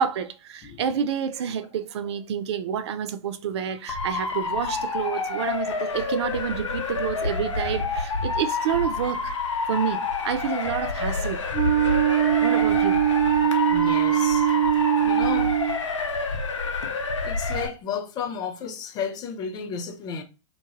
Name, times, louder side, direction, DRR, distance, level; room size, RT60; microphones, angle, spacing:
voice 1, 0.0-9.3 9.7-11.4 12.4-13.0, right 8 dB, 60° right, 0.4 m, -28 dB
Motor vehicle (road) / Siren, 3.9-17.7, left 4 dB, 70° left, 0.7 m, -28 dB
Wind instrument woodwind instrument, 11.5-15.8, right 11 dB, 30° right, 0.9 m, -21 dB
voice 2, 13.7-14.5 15.0-15.5 17.2-20.2, left 6 dB, 25° left, 0.4 m, -33 dB
3.0 x 2.1 x 2.9 m
figure-of-eight pair, 110°, 16 cm